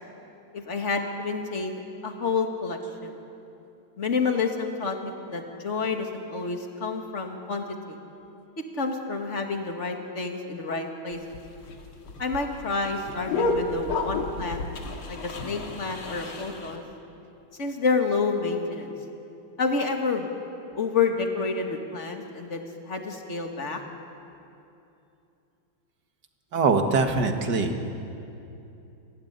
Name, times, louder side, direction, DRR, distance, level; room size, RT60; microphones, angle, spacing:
voice 1, 0.5-3.1 4.0-8.0 8.7-11.2 12.2-14.6 15.1-16.8 17.6-18.9 19.6-20.3 20.7-23.8, left 4 dB, 35° left, 3 dB, 2.2 m, -29 dB
sound 1, 11.1-16.8, left 3 dB, 75° left, 2.9 m, -31 dB
voice 2, 26.5-27.9, right 4 dB, 55° right, 5 dB, 2.2 m, -23 dB
26.0 x 16.5 x 9.7 m, 2.8 s
omnidirectional pair, 2.4 m